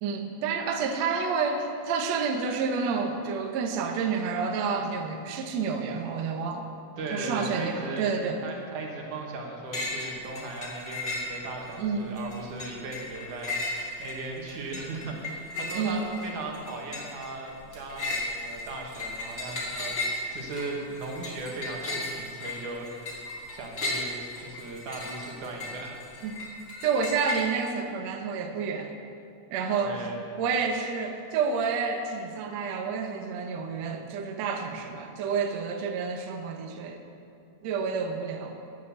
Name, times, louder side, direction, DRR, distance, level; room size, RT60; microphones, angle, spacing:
voice 1, 0.0-6.7 7.1-8.4 11.8-12.2 15.7-16.0 26.2-26.3 26.8-28.9 29.5-30.0 30.4-37.0 37.6-38.5, right 5 dB, 80° right, 4 dB, 1.5 m, -29 dB
voice 2, 7.0-8.1 8.4-26.0 29.8-30.2, right 3 dB, 65° right, 0 dB, 2.7 m, -38 dB
sound 1, 9.7-10.1 10.4-11.7 12.2-27.4, left 2 dB, 30° left, 1.9 m, -35 dB
9.5 x 9.3 x 6.8 m, 2.5 s
omnidirectional pair, 4.2 m